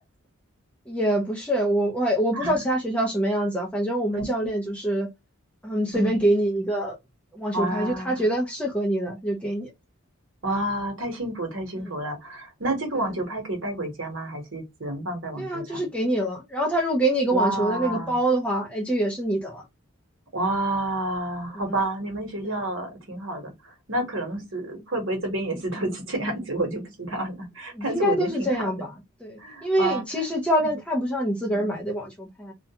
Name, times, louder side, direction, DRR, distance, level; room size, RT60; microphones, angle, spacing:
voice 1, 0.9-5.1 5.6-7.0 7.3-9.7 11.8-11.9 12.9-13.0 15.4-19.6 21.5-21.8 22.4-22.5 27.7-28.9 29.2-32.5, right 1 dB, 5° left, 0.5 m, -25 dB
voice 2, 2.3-2.7 4.1-4.5 5.9-6.2 7.5-8.2 10.4-15.8 17.3-18.2 20.3-28.7 29.4-30.0 30.6-30.7 31.4-31.8, right 2 dB, 60° right, 1.1 m, -29 dB
2.4 x 2.2 x 2.8 m
head